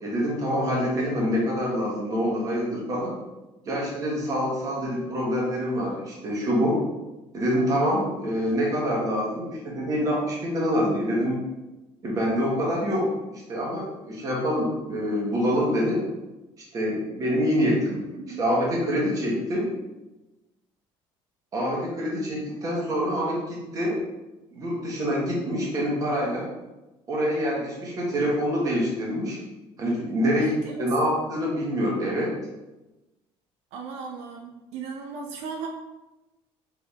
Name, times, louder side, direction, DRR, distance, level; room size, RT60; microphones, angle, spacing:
voice 1, 0.0-3.1 3.6-6.8 7.3-11.4 12.0-16.0 16.7-18.0 18.4-19.8 21.5-24.0 24.5-26.5 27.1-29.4 29.8-32.3, equal, 30° right, -4 dB, 1.5 m, -26 dB
voice 2, 18.1-18.4 30.4-31.1 33.7-35.7, right 5 dB, 80° right, 1 dB, 0.5 m, -37 dB
3.9 x 3.6 x 3.5 m, 1.0 s
cardioid pair, 160°, 11 cm